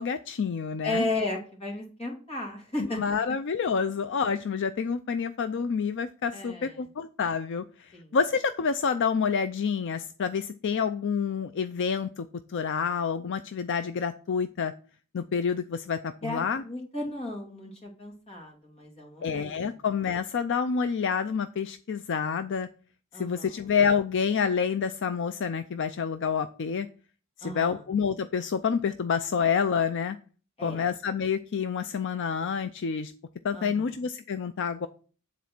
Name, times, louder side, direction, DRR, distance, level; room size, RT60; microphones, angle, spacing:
voice 1, 0.0-1.1 3.0-14.7 15.1-16.6 19.2-22.7 23.1-26.9 27.4-30.2 30.6-33.1 33.4-34.9, left 6 dB, 55° left, 10 dB, 0.4 m, -28 dB
voice 2, 0.8-3.0 6.3-6.7 7.9-8.2 16.2-19.8 23.1-23.6 27.4-27.8 30.6-30.9 33.5-33.9, left 2 dB, 25° left, 0 dB, 2.7 m, -35 dB
9.3 x 4.2 x 6.0 m, 0.40 s
head